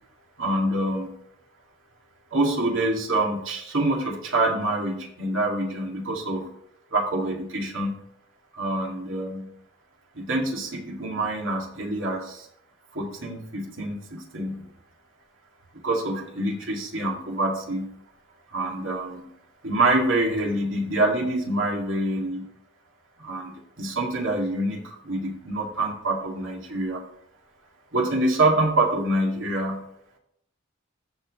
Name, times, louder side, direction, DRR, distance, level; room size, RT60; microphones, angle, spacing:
voice 1, 0.4-1.1 2.3-6.5 6.9-8.0 8.5-9.5 10.1-12.5 12.9-14.6 15.8-17.9 18.5-19.3 19.6-22.5 23.2-27.0 27.9-29.8, right 2 dB, 85° right, 0 dB, 2.2 m, -26 dB
14.0 x 6.0 x 3.1 m, 0.71 s
head